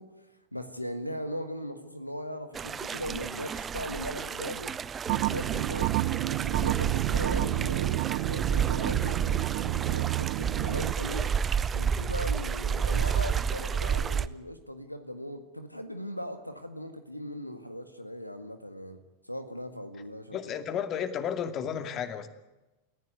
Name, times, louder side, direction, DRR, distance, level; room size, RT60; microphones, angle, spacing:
voice 1, 0.0-9.3 9.9-11.3 11.7-20.4, equal, 90° left, 9 dB, 1.7 m, -39 dB
sound 1, 2.5-14.3, right 7 dB, 20° right, 0.8 m, -31 dB
sound 2, 5.1-10.9, right 19 dB, 45° right, 0.9 m, -29 dB
voice 2, 20.3-22.3, left 8 dB, 30° left, 10 dB, 2.4 m, -32 dB
28.5 x 15.0 x 9.5 m, 1.1 s
figure-of-eight pair, 90°, 0 cm